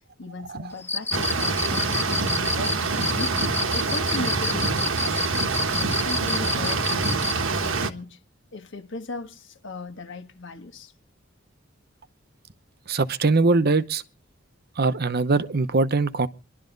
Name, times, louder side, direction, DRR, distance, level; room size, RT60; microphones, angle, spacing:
voice 1, 0.2-3.4 3.7-5.3 5.8-7.3 7.5-8.2 8.5-10.9, left 2 dB, 65° left, 1.3 m, -37 dB
Cricket, 0.8-7.4, left 3 dB, 10° left, 0.7 m, -28 dB
sound 1, 1.1-7.9, right 4 dB, 80° right, 1.3 m, -26 dB
voice 2, 12.9-14.0 14.8-16.3, right 3 dB, 55° right, 0.8 m, -21 dB
25.0 x 12.0 x 3.9 m
head